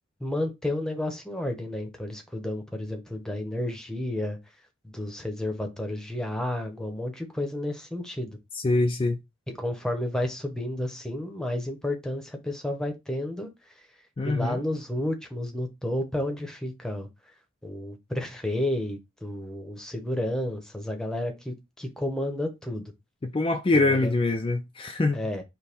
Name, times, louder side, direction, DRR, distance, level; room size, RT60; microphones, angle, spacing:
voice 1, 0.2-4.4 4.8-8.4 9.5-13.5 14.2-17.1 17.6-22.9 23.7-24.1 25.1-25.4, left 1 dB, 5° left, 0.8 m, -31 dB
voice 2, 8.5-9.2 14.2-14.6 23.2-25.2, left 2 dB, 25° left, 0.4 m, -24 dB
5.2 x 2.2 x 4.4 m
head